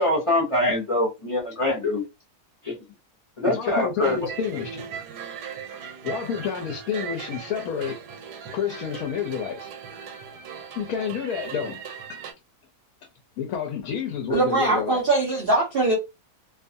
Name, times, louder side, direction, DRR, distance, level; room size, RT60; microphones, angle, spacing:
voice 1, 0.0-2.0 2.6-2.7 3.4-4.2, left 1 dB, 30° left, 0.6 m, -23 dB
voice 2, 3.5-4.9 6.0-8.0 8.5-9.7 10.8-11.8 12.1-12.2 13.4-15.0, left 7 dB, 70° left, 1.0 m, -29 dB
sound 1, 4.0-12.3, right 7 dB, 85° right, 1.2 m, -38 dB
voice 3, 14.3-16.0, right 2 dB, 50° right, 0.7 m, -21 dB
2.5 x 2.4 x 2.6 m
omnidirectional pair, 1.7 m